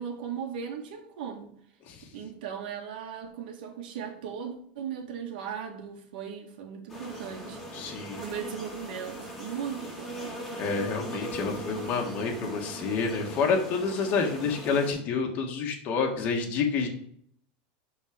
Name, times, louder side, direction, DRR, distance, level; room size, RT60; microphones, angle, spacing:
voice 1, 0.0-1.5 2.1-7.6 8.2-10.5, right 7 dB, 80° right, 3 dB, 1.9 m, -37 dB
sound 1, 6.9-14.9, right 1 dB, 5° left, 2.1 m, -40 dB
voice 2, 7.7-8.2 10.6-16.9, left 5 dB, 35° left, 1 dB, 1.5 m, -28 dB
11.0 x 4.1 x 5.1 m, 0.65 s
supercardioid pair, 165°, 5 cm